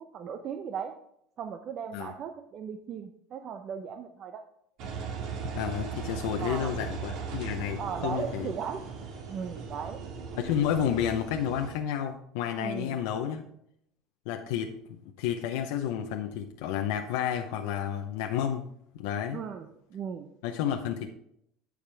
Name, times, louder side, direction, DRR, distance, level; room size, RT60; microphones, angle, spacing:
voice 1, 0.1-0.9 1.4-4.4 6.4-6.8 7.8-8.8 9.3-10.0 12.6-13.0 19.3-20.3, right 7 dB, 45° right, 6 dB, 0.7 m, -37 dB
Engine, 4.8-11.8, right 5 dB, 60° right, 1.9 m, -38 dB
voice 2, 5.5-8.5 10.4-13.4 14.3-18.6 18.9-19.4 20.4-21.1, left 9 dB, 85° left, 3 dB, 0.7 m, -31 dB
14.0 x 5.0 x 3.4 m, 0.73 s
supercardioid pair, 125°, 0 cm